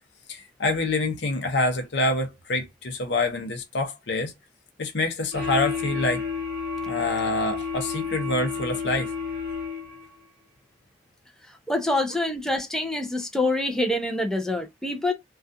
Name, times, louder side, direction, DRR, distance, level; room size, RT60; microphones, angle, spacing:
voice 1, 0.3-4.3 4.8-6.3 6.9-9.1, left 2 dB, 75° left, 0.7 m, -26 dB
sound 1, 5.3-10.1, left 5 dB, 55° right, 0.9 m, -31 dB
voice 2, 11.7-15.1, left 1 dB, 5° left, 0.4 m, -26 dB
2.3 x 2.3 x 2.5 m
head